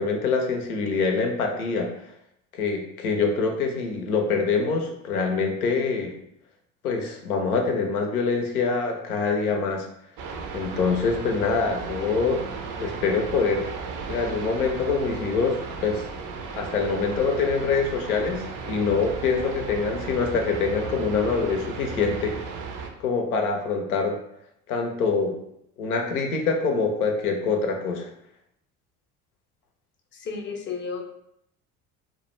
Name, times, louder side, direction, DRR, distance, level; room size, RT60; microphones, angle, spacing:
voice 1, 0.0-1.9 2.5-6.1 6.8-9.9 10.5-12.4 12.8-13.7 14.1-16.0 16.5-22.4 23.0-24.2 24.7-25.4 25.8-28.1, left 4 dB, 85° left, 3 dB, 0.5 m, -25 dB
sound 1, 10.2-22.9, right 5 dB, 45° right, 0.5 m, -35 dB
voice 2, 30.1-31.0, left 5 dB, 25° left, 2 dB, 0.5 m, -32 dB
2.2 x 2.1 x 3.0 m, 0.76 s
hypercardioid pair, 60°, 43 cm